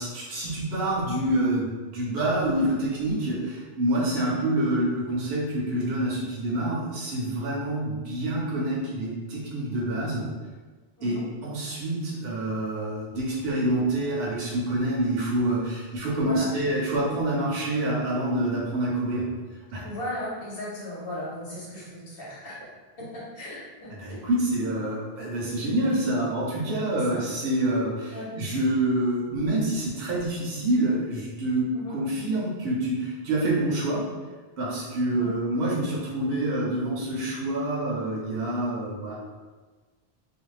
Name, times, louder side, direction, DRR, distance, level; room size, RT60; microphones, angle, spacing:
voice 1, 0.0-1.7 1.9-10.2 11.0-11.2 11.4-19.3 19.7-19.8 23.9-34.0 34.6-39.2, right 1 dB, 70° right, -5 dB, 0.8 m, -27 dB
voice 2, 16.2-16.5 19.8-22.6 23.0-23.1 23.3-24.3 26.9-27.2 28.1-28.3 31.7-32.0 35.2-35.3, left 1 dB, 70° left, -6 dB, 1.1 m, -36 dB
2.5 x 2.1 x 3.0 m, 1.4 s
omnidirectional pair, 1.0 m